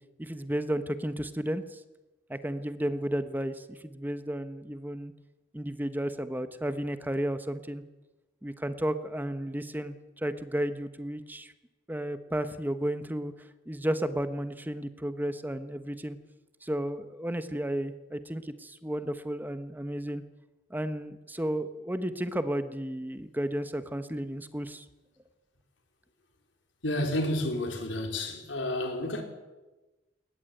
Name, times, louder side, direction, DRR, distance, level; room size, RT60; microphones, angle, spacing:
voice 1, 0.2-1.8 2.3-5.1 5.5-7.8 8.4-11.5 11.9-13.3 13.7-16.2 16.6-20.2 20.7-24.8, right 1 dB, 10° right, 1.1 m, -33 dB
voice 2, 26.8-29.2, left 1 dB, 75° left, 4.5 m, -30 dB
21.5 x 19.5 x 9.1 m
head